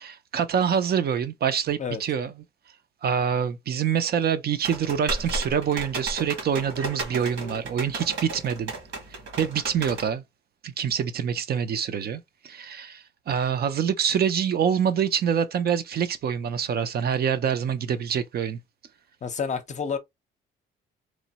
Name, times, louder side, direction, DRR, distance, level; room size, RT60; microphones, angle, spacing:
voice 1, 0.0-2.3 3.0-8.7 9.4-10.2 10.6-18.6, right 8 dB, 50° right, 0.5 m, -26 dB
sound 1, 4.6-10.1, right 2 dB, 75° right, 1.4 m, -34 dB
voice 2, 19.2-20.0, left 6 dB, 35° left, 0.6 m, -29 dB
3.1 x 2.2 x 2.8 m
cardioid pair, 90°, 20 cm